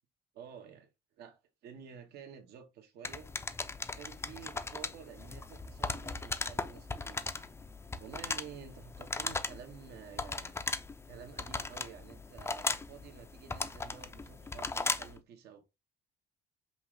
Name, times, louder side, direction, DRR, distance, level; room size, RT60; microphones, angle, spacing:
voice 1, 0.3-0.9 1.2-3.3 3.9-7.2 8.0-10.6 11.1-15.6, right 7 dB, 75° right, 1.1 m, -51 dB
sound 1, 3.0-15.2, left 3 dB, 15° left, 0.4 m, -38 dB
5.6 x 2.5 x 3.1 m
cardioid pair, 110°, 17 cm